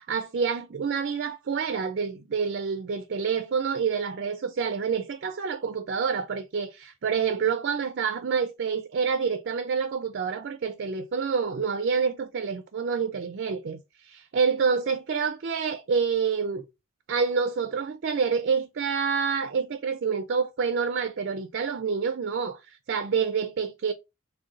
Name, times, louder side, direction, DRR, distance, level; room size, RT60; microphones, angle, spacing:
voice 1, 0.0-16.7 17.1-23.9, right 5 dB, 50° right, 0.4 m, -27 dB
3.7 x 2.2 x 3.8 m
head